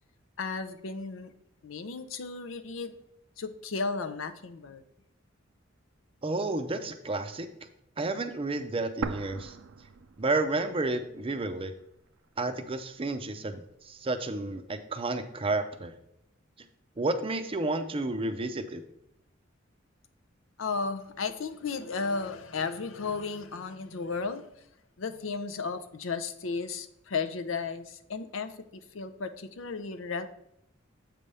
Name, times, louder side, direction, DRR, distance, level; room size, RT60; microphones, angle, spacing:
voice 1, 0.4-1.3 1.6-2.9 3.4-4.8 20.6-24.5 25.0-30.3, left 4 dB, 75° left, 10 dB, 0.6 m, -34 dB
voice 2, 6.2-7.5 8.0-9.6 10.2-11.7 12.4-15.9 17.0-18.8, right 2 dB, 30° right, 8 dB, 0.5 m, -31 dB
sound 1, 9.0-11.0 11.3-11.4 12.1-13.0, right 4 dB, 75° right, 0.4 m, -39 dB
7.4 x 3.4 x 5.4 m, 0.78 s
head